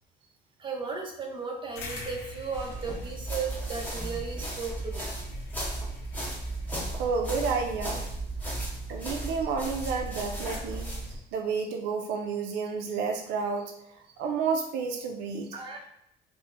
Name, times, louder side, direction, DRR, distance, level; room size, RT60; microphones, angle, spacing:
voice 1, 0.6-5.1 15.5-15.8, right 5 dB, 30° right, 1 dB, 0.7 m, -35 dB
sound 1, 1.8-6.7, left 3 dB, 80° left, 0.7 m, -46 dB
sound 2, 2.5-11.2, right 1 dB, 10° left, 0.8 m, -35 dB
voice 2, 6.9-8.0 8.9-13.7 14.2-15.5, right 5 dB, 85° right, 3 dB, 0.4 m, -30 dB
4.3 x 2.1 x 2.5 m, 0.77 s
cardioid pair, 110°, 17 cm